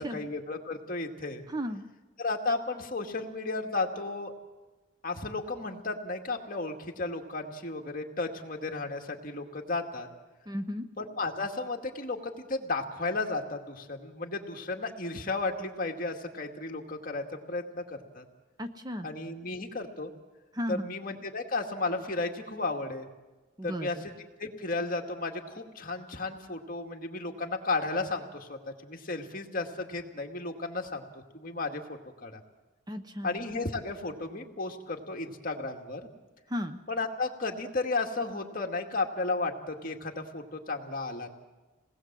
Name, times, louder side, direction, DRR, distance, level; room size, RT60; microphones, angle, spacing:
voice 1, 0.0-1.4 2.2-4.3 5.0-10.1 11.0-18.2 19.0-20.1 20.7-23.1 23.6-24.1 24.4-31.1 31.3-32.4 33.2-36.1 36.9-41.3, left 3 dB, 45° left, 2 dB, 2.2 m, -34 dB
voice 2, 1.5-1.8 10.5-10.9 18.6-19.1 20.5-20.9 23.6-24.0 32.9-33.4 36.5-36.8, equal, 20° right, 8 dB, 0.8 m, -34 dB
28.0 x 19.5 x 7.6 m, 1.2 s
head